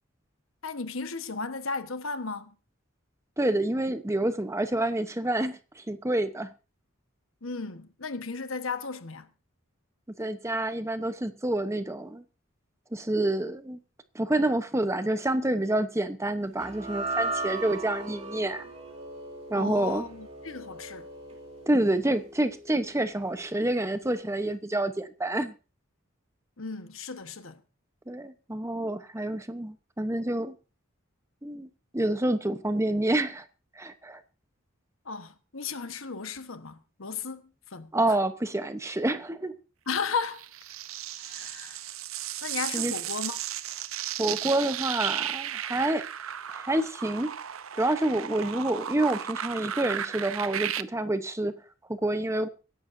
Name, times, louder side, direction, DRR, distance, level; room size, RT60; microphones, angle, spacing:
voice 1, 0.6-2.5 7.4-9.3 19.5-21.1 26.6-27.6 35.0-37.4 37.7-38.2 39.9-40.4 41.2-41.8 42.4-43.4, left 4 dB, 75° left, 1.3 m, -35 dB
voice 2, 3.4-6.5 10.2-12.2 12.9-13.8 14.1-18.7 19.5-20.1 21.7-25.5 28.1-30.6 31.4-33.5 33.8-34.2 37.9-39.5 42.7-42.9 44.2-46.0 46.5-47.3 47.7-51.6 51.9-52.5, right 1 dB, 15° right, 0.9 m, -28 dB
sound 1, 16.6-23.0, right 2 dB, 30° right, 3.3 m, -37 dB
sound 2, 40.2-50.8, right 11 dB, 85° right, 0.7 m, -35 dB
24.5 x 11.0 x 2.7 m
head